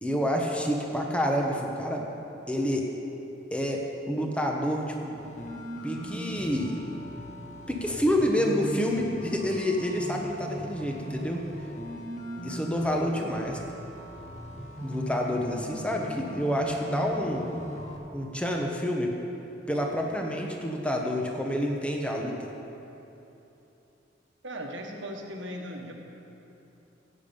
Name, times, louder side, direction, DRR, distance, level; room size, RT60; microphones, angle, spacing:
voice 1, 0.0-2.0 2.5-2.9 3.5-5.2 5.8-6.8 7.7-11.4 12.4-13.6 14.8-17.5 18.1-19.1 19.7-22.5, equal, 5° left, 0 dB, 1.1 m, -28 dB
sound 1, 5.2-18.0, equal, 40° left, 1.4 m, -39 dB
voice 2, 24.4-25.9, equal, 90° right, 1 dB, 1.6 m, -37 dB
15.5 x 8.9 x 5.4 m, 3.0 s
head